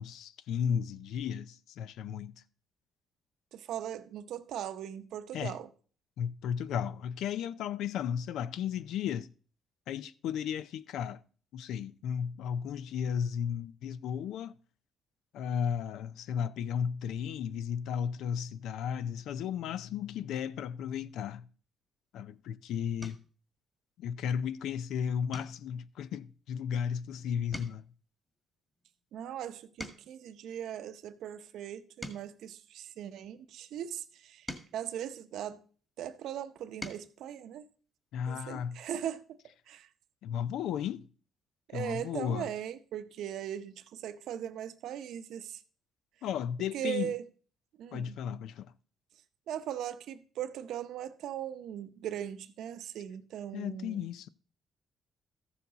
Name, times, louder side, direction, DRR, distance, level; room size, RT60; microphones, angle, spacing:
voice 1, 0.0-2.4 5.3-5.6 6.2-9.3 9.9-11.2 11.5-14.6 15.3-21.5 22.1-23.2 24.0-27.8 38.1-38.8 40.2-41.1 41.7-42.5 46.2-47.1 47.9-48.7 53.5-54.3, left 8 dB, 85° left, 0.5 m, -34 dB
voice 2, 3.5-5.7 29.1-34.4 34.7-35.6 36.0-37.7 38.3-39.2 39.7-39.9 41.7-45.6 46.7-47.2 47.8-48.2 49.5-54.1, right 10 dB, 80° right, 0.7 m, -39 dB
sound 1, 23.0-23.4 23.9-24.3 24.6-24.8 25.3-27.1 27.4-30.3 30.9-33.4 34.1-35.9 36.4-37.2 38.6-38.7 39.0-39.1, left 1 dB, 10° left, 1.9 m, -49 dB
14.0 x 7.0 x 4.0 m
cardioid pair, 90°, 0 cm